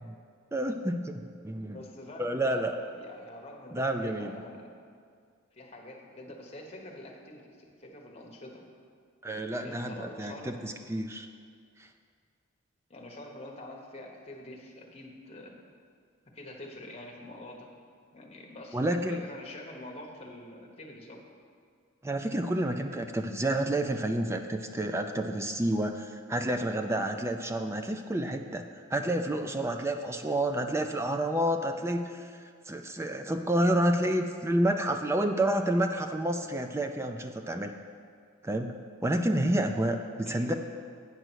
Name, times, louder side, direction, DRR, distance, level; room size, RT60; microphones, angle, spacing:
voice 1, 0.5-1.8 2.2-2.7 3.7-4.4 9.2-11.3 18.7-19.2 22.0-28.7 28.9-32.3 32.7-37.7 38.4-38.7 39.0-40.5, right 1 dB, 15° right, 5 dB, 0.4 m, -29 dB
voice 2, 1.7-4.6 5.5-8.6 9.5-10.6 12.9-15.6 16.3-17.7 18.1-21.2 40.2-40.5, left 1 dB, 30° left, -1 dB, 1.1 m, -46 dB
9.1 x 5.4 x 6.2 m, 2.1 s
head